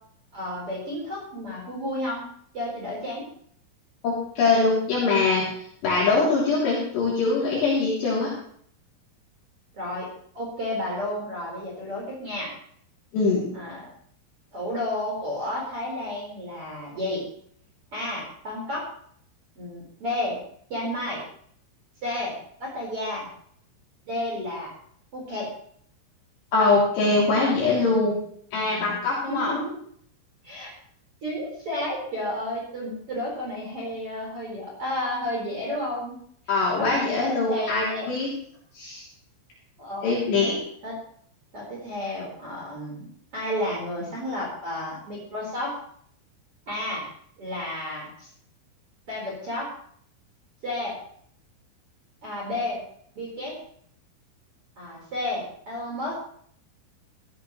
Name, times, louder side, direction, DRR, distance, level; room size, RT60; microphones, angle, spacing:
voice 1, 0.3-2.2 2.5-3.2 9.8-10.1 10.3-12.5 13.5-13.8 14.5-17.2 17.9-18.9 19.5-20.4 20.7-21.2 22.0-23.3 24.1-24.7 25.1-25.5 27.4-27.8 29.3-29.7 30.4-30.7 31.2-36.1 36.8-38.1 39.8-40.5 40.8-41.0 41.5-45.7 46.7-47.1 47.4-48.3 49.1-49.7 50.6-51.0 52.2-52.8 53.1-53.5 54.8-56.2, left 1 dB, 30° right, -4 dB, 4.9 m, -32 dB
voice 2, 4.0-5.5 5.8-8.3 13.1-13.4 26.5-28.2 28.5-29.5 36.5-38.3 38.7-39.1 40.0-40.6, left 3 dB, 60° left, -6 dB, 5.1 m, -22 dB
15.5 x 15.5 x 3.2 m, 0.62 s
omnidirectional pair, 6.0 m